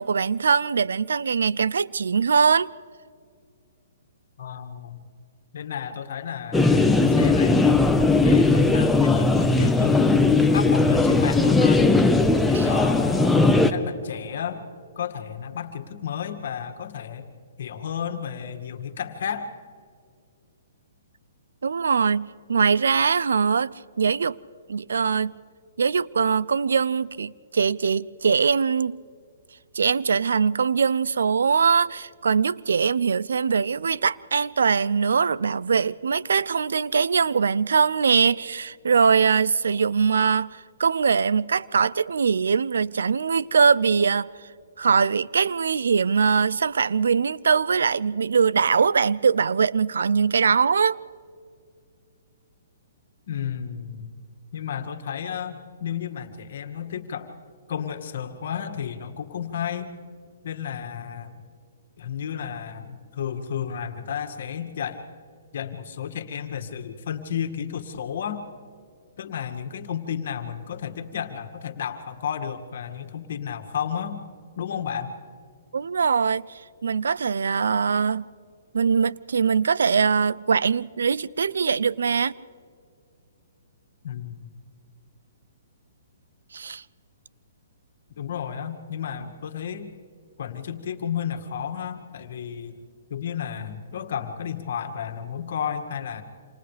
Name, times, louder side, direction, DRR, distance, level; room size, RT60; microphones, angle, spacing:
voice 1, 0.0-2.7 12.5-12.7 21.6-24.4 24.7-25.3 25.8-29.0 29.7-44.3 44.8-51.0 75.7-78.2 78.7-82.3 86.5-86.8, right 6 dB, 80° right, 0.5 m, -22 dB
voice 2, 4.4-5.0 5.5-10.2 10.5-11.9 12.4-14.6 15.0-17.3 17.6-19.5 53.3-54.1 54.5-57.3 57.7-59.9 60.4-61.4 62.0-65.0 65.5-68.4 69.2-74.2 74.6-75.2 84.0-84.5 88.2-89.9 90.4-92.8 93.1-96.2, left 8 dB, 65° left, 2.0 m, -32 dB
sound 1, 6.5-13.7, left 3 dB, 5° left, 1.0 m, -18 dB
28.5 x 27.5 x 3.4 m
hypercardioid pair, 140°, 0 cm